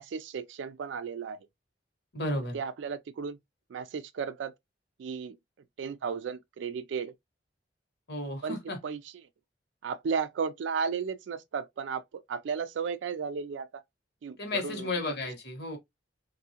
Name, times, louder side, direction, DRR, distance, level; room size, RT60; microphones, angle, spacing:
voice 1, 0.0-1.4 2.5-3.4 3.7-4.5 5.0-5.4 5.8-7.1 8.4-8.6 8.8-9.1 9.8-13.8 14.2-14.9, right 6 dB, 85° right, 0.3 m, -34 dB
voice 2, 2.1-2.6 8.1-8.8 14.4-15.8, left 2 dB, 65° left, 1.4 m, -33 dB
3.6 x 2.6 x 2.8 m
head